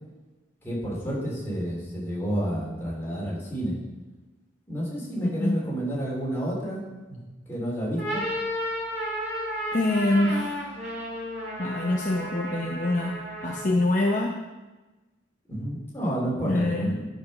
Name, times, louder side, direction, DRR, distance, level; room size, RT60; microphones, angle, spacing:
voice 1, 0.6-3.7 4.7-6.8 7.1-8.2 15.5-17.0, equal, 10° left, -6 dB, 3.4 m, -30 dB
sound 1, 7.8-13.8, equal, 35° right, 3.8 m, -33 dB
voice 2, 9.7-10.6 11.6-14.4 16.5-17.0, left 2 dB, 40° left, -1 dB, 0.8 m, -25 dB
10.5 x 6.1 x 5.5 m, 1.1 s
head